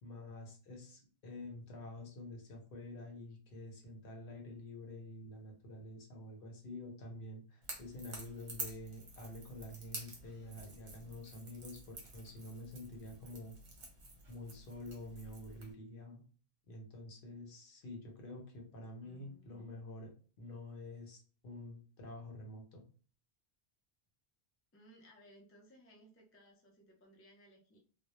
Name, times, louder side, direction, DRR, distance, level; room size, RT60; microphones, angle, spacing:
voice 1, 0.0-13.5 14.3-16.2 16.7-20.1 20.4-22.8, left 1 dB, 65° left, 2 dB, 0.8 m, -48 dB
Crackle / Crack, 7.6-15.7, right 2 dB, 50° right, 0.8 m, -50 dB
voice 2, 19.0-19.7 24.7-27.8, right 1 dB, 25° left, -1 dB, 0.3 m, -62 dB
2.1 x 2.0 x 2.9 m, 0.39 s
omnidirectional pair, 1.0 m